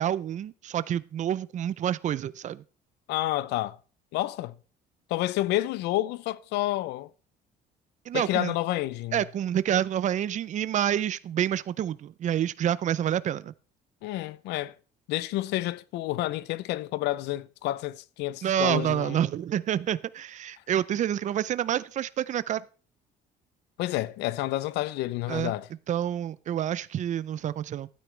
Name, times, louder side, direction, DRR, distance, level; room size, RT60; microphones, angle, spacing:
voice 1, 0.0-2.6 8.1-8.5 9.1-13.5 18.4-22.6 25.3-25.5 25.9-27.9, right 10 dB, 45° right, 0.5 m, -28 dB
voice 2, 3.1-3.8 4.1-4.6 5.1-7.1 8.1-9.2 14.0-14.8 15.1-19.3 23.8-25.7, left 16 dB, 85° left, 0.6 m, -29 dB
12.5 x 9.2 x 3.3 m
cardioid pair, 110°, 17 cm